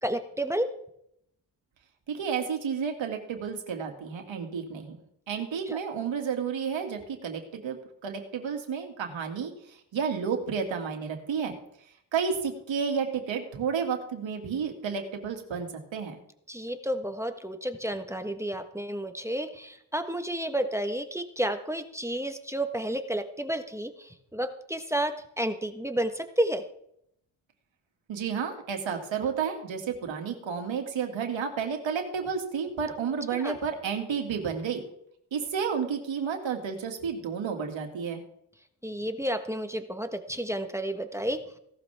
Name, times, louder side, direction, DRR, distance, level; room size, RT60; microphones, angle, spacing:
voice 1, 0.0-0.7 5.7-5.8 16.5-26.6 33.3-33.6 38.8-41.4, right 1 dB, 5° right, 7 dB, 1.4 m, -31 dB
voice 2, 2.1-5.0 5.3-7.8 8.0-11.5 12.1-16.2 28.1-34.8 35.3-38.2, right 6 dB, 75° right, 3 dB, 2.5 m, -31 dB
17.5 x 12.0 x 3.6 m, 0.73 s
cardioid pair, 70°, 46 cm